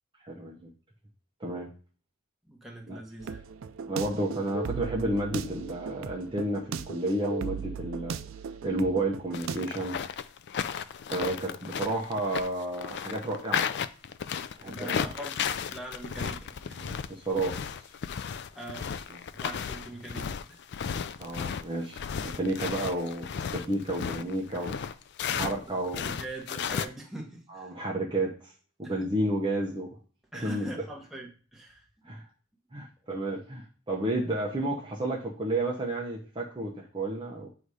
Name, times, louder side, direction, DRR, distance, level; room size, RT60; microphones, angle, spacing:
voice 1, 0.2-0.7 1.4-1.7 2.9-3.0 3.9-8.2 8.6-10.0 11.1-13.7 14.6-15.1 16.8-17.6 19.1-19.2 21.2-24.8 25.3-26.1 27.5-28.5 28.8-30.0 30.3-30.7 32.1-32.2 32.7-37.5, right 1 dB, 25° right, -2 dB, 0.8 m, -31 dB
voice 2, 2.5-3.4 14.6-17.0 18.5-19.0 19.3-20.6 25.3-27.7 28.8-29.1 30.3-31.8, right 2 dB, ahead, -2 dB, 1.2 m, -43 dB
sound 1, 3.2-9.6, right 6 dB, 75° right, 0.4 m, -38 dB
sound 2, 9.3-25.6 25.9-26.9, left 7 dB, 55° left, 0.4 m, -34 dB
8.0 x 2.7 x 4.8 m, 0.39 s
head